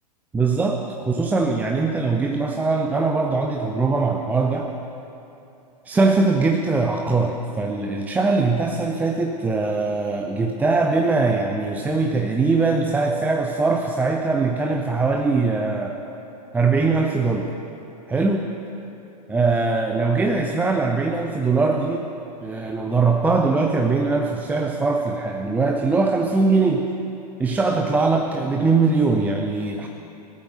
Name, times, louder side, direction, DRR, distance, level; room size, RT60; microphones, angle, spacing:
voice 1, 0.3-4.7 5.9-16.0 16.5-17.6 18.1-18.5 19.3-22.1 22.4-26.9 27.4-29.9, right 3 dB, 5° right, 3 dB, 0.6 m, -21 dB
17.5 x 12.5 x 6.5 m, 2.9 s
figure-of-eight pair, 105°, 21 cm